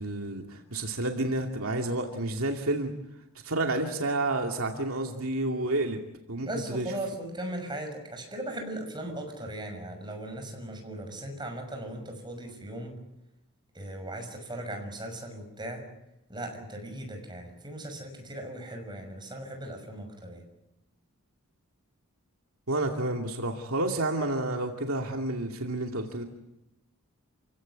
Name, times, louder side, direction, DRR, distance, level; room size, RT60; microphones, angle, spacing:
voice 1, 0.0-2.9 3.4-6.0 6.3-6.9 22.7-26.2, right 2 dB, 70° right, 3 dB, 2.5 m, -30 dB
voice 2, 6.4-12.9 13.7-15.8 16.3-20.4, right 1 dB, 20° right, 4 dB, 6.1 m, -38 dB
28.5 x 17.0 x 9.5 m, 0.88 s
head